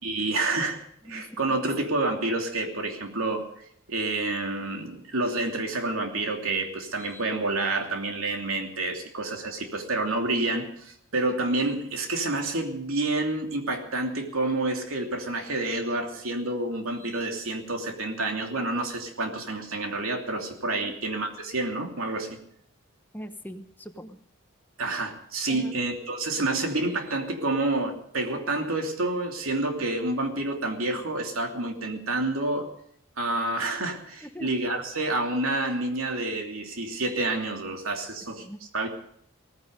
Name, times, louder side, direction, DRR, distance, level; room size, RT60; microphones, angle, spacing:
voice 1, 0.0-3.5 3.9-22.4 24.8-32.7 33.2-38.5 38.7-38.9, right 2 dB, 80° right, 3 dB, 2.9 m, -28 dB
voice 2, 1.1-1.4 20.7-21.0 23.1-24.2 25.5-25.8 34.2-34.8 38.4-38.6, equal, 10° left, 7 dB, 1.0 m, -41 dB
18.0 x 15.0 x 5.2 m, 0.68 s
head